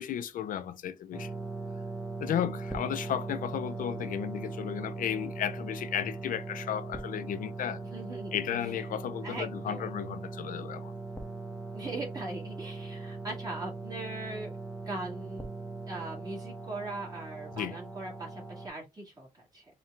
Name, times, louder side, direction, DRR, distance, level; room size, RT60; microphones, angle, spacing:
voice 1, 0.0-1.3 2.2-7.8 8.3-10.9 17.6-17.8, left 10 dB, 65° left, 0.4 m, -34 dB
sound 1, 1.1-18.7, right 3 dB, 5° left, 0.7 m, -40 dB
voice 2, 7.9-8.4 9.2-10.0 11.7-14.5 14.9-15.5 15.9-19.6, right 2 dB, 25° right, 1.8 m, -40 dB
4.3 x 2.3 x 3.6 m
cardioid pair, 135°, 15 cm